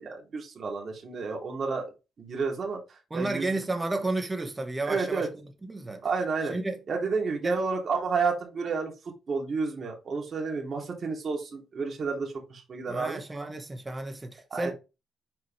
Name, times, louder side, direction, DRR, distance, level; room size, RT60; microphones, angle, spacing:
voice 1, 0.0-1.8 2.2-3.6 4.9-5.3 6.0-6.6 6.9-8.9 9.3-13.2 14.5-14.7, right 4 dB, 45° right, 3.1 m, -31 dB
voice 2, 3.1-5.3 5.6-6.0 6.4-6.8 7.4-7.6 12.9-14.7, right 2 dB, 15° right, 1.8 m, -32 dB
7.7 x 4.9 x 3.5 m
cardioid pair, 90°, 0 cm